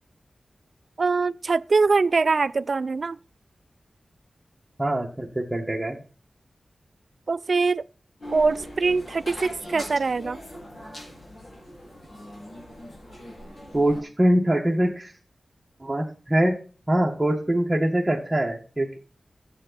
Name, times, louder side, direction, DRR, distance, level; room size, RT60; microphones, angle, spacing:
voice 1, 1.0-3.2 7.3-7.8 8.3-10.4, right 4 dB, 65° right, 0.4 m, -23 dB
voice 2, 4.8-6.0 13.7-15.1 15.8-16.6 16.9-19.0, right 1 dB, 15° right, 1.7 m, -23 dB
sound 1, 8.2-14.0, left 1 dB, 60° left, 4.3 m, -41 dB
11.0 x 8.2 x 4.1 m
wide cardioid pair, 70°, 0 cm